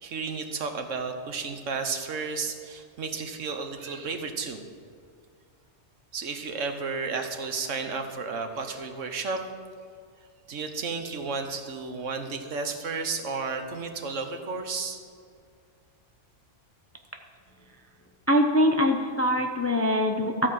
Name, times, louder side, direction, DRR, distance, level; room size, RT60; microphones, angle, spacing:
voice 1, 0.0-4.6 6.1-9.4 10.5-15.0, right 4 dB, 90° right, 6 dB, 1.3 m, -32 dB
voice 2, 18.3-20.5, equal, 20° left, 4 dB, 0.4 m, -23 dB
13.5 x 4.8 x 7.4 m, 2.2 s
omnidirectional pair, 1.2 m